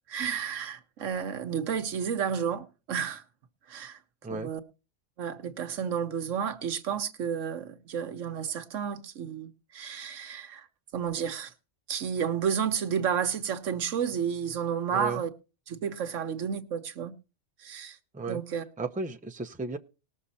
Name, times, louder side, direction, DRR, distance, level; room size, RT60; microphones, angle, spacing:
voice 1, 0.1-3.2 3.7-4.0 4.3-4.6 5.2-10.7 10.9-11.5 11.9-15.3 15.7-17.2 17.6-18.0 18.3-18.6, right 7 dB, 85° right, 1.4 m, -31 dB
voice 2, 14.9-15.2 18.1-18.4 18.8-19.8, right 3 dB, 10° right, 0.6 m, -34 dB
19.0 x 6.5 x 4.2 m
omnidirectional pair, 1.3 m